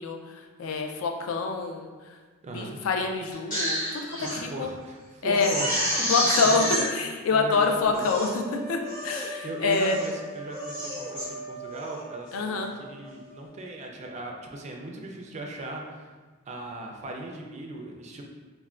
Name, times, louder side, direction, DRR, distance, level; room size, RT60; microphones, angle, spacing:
voice 1, 0.0-2.2 2.5-4.7 5.2-5.5 6.1-10.0 12.3-12.7, left 4 dB, 75° left, 3 dB, 0.3 m, -26 dB
voice 2, 2.4-2.8 4.2-5.7 6.0-6.6 7.3-8.0 9.4-16.1 16.5-18.2, right 2 dB, 35° right, 1 dB, 0.3 m, -38 dB
Crying sobbing, 3.3-4.4 4.8-4.9 5.3-6.9 7.5-7.6 7.9-8.4 8.9-9.3 9.7-10.1 10.5-11.3 11.7-12.0, equal, 40° left, 1.3 m, -29 dB
sound 1, 8.0-13.9, right 1 dB, 55° left, 0.8 m, -41 dB
3.3 x 2.1 x 2.4 m, 1.3 s
head